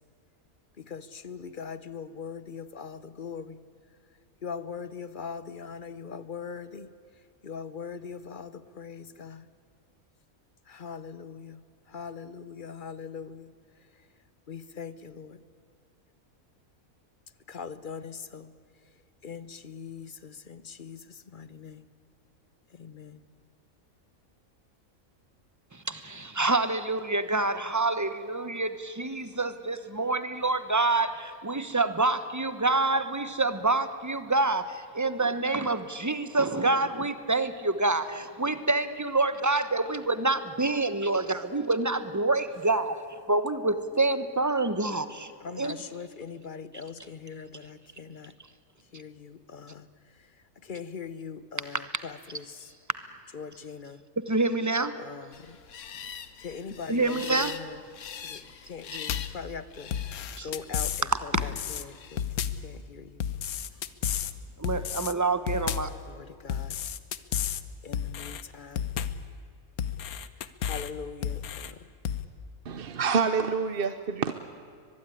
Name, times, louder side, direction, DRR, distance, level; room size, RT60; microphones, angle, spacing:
voice 1, 0.8-3.6 4.4-6.9 7.4-9.5 10.7-11.6 11.9-13.5 14.5-15.4 17.5-18.5 19.2-21.9 22.7-23.2 45.4-48.3 48.9-49.9 50.6-52.7 53.3-54.0 55.0-55.6 56.4-57.8 58.2-59.9 60.4-62.2 62.6-63.2 66.1-66.8 67.8-68.9 70.6-71.8, left 6 dB, 40° left, 15 dB, 0.8 m, -41 dB
voice 2, 25.7-43.0 43.3-45.8 54.3-54.9 56.9-57.6 60.4-60.5 61.3-61.4 64.6-65.9, right 3 dB, 15° right, 12 dB, 0.9 m, -27 dB
sound 1, 55.3-62.2, left 8 dB, 60° left, 1.3 m, -44 dB
sound 2, 59.1-59.4 59.9-61.1 61.4-61.8 62.2-62.7 63.2-64.3 64.6-65.1 65.5-66.0 66.5-67.6 67.9-68.4 68.8-69.3 69.8-70.9 71.2-71.7 72.1-72.3, left 9 dB, 85° left, 1.4 m, -32 dB
voice 3, 72.7-74.3, right 5 dB, 45° right, 10 dB, 0.9 m, -27 dB
23.0 x 21.5 x 9.9 m, 2.3 s
omnidirectional pair, 1.5 m